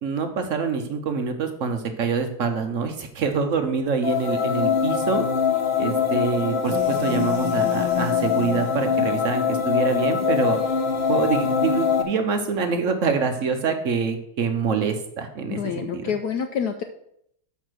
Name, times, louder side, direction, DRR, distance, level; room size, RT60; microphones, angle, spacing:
voice 1, 0.0-5.2 5.8-10.6 11.1-16.1, right 5 dB, 60° right, 7 dB, 0.8 m, -25 dB
sound 1, 4.0-12.0, left 6 dB, 35° left, 0.9 m, -23 dB
voice 2, 15.5-16.8, left 7 dB, 75° left, 7 dB, 0.9 m, -27 dB
6.5 x 5.8 x 6.1 m, 0.73 s
omnidirectional pair, 2.2 m